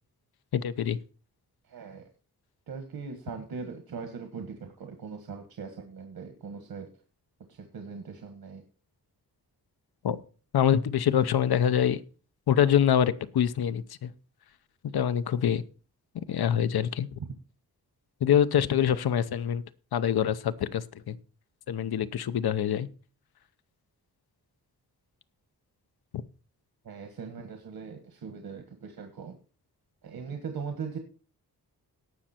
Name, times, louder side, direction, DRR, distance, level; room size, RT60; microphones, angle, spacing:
voice 1, 0.5-1.0 10.0-10.2 10.5-12.0 12.5-14.1 14.9-15.6 16.1-17.1 18.2-19.6 19.9-21.2 21.7-22.9, left 9 dB, 80° left, 14 dB, 0.8 m, -25 dB
voice 2, 1.7-2.0 2.7-6.9 7.5-8.6 26.8-29.4 30.0-31.0, right 5 dB, 70° right, 5 dB, 1.6 m, -40 dB
18.0 x 6.3 x 4.4 m, 0.36 s
wide cardioid pair, 155°, 37 cm